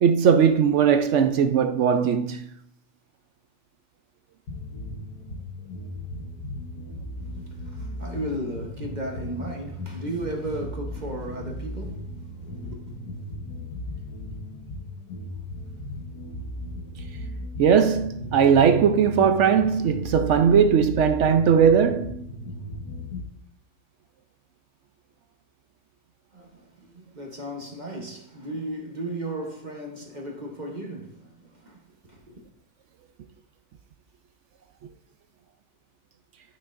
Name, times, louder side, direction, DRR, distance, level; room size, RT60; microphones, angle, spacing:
voice 1, 0.0-2.5 17.6-22.1, right 7 dB, 65° right, 0.7 m, -19 dB
sound 1, 4.5-23.2, left 1 dB, 85° left, 1.7 m, -36 dB
voice 2, 7.4-13.0 26.3-32.5, right 1 dB, 35° right, 1.0 m, -35 dB
12.0 x 6.1 x 2.5 m
omnidirectional pair, 1.6 m